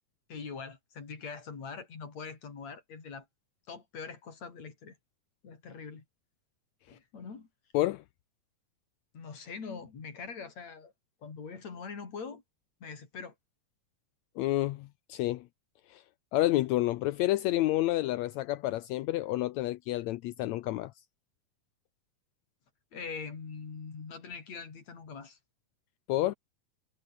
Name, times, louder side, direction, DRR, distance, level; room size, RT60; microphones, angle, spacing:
voice 1, 0.3-3.3 3.7-5.0 5.4-6.0 6.9-7.5 9.1-10.9 11.2-12.4 12.8-13.3 22.9-25.4, left 5 dB, 50° left, 5.2 m, -43 dB
voice 2, 14.4-15.5 15.9-16.0 16.3-20.9 26.1-26.3, left 16 dB, 85° left, 1.6 m, -29 dB
omnidirectional pair, 3.9 m